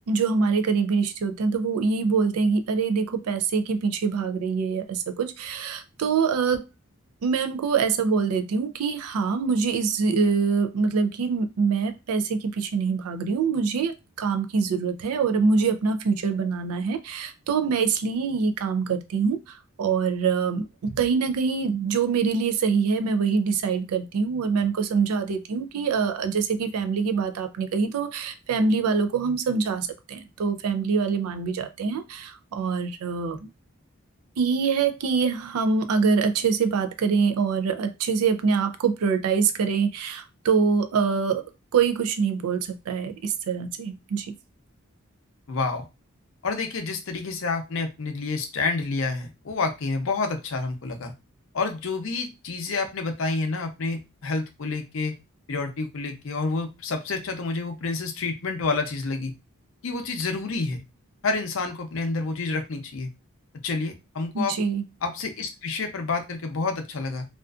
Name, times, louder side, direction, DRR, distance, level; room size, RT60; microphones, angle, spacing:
voice 1, 0.1-6.6 7.2-33.5 34.4-41.4 41.7-44.3 64.3-64.8, right 5 dB, 90° right, 9 dB, 0.4 m, -24 dB
voice 2, 45.5-45.8 46.4-51.1 51.5-55.1 55.5-59.3 59.8-60.8 61.2-63.1 63.6-64.5 65.0-67.3, left 3 dB, 65° left, 5 dB, 0.5 m, -29 dB
2.4 x 2.4 x 2.3 m, 0.25 s
head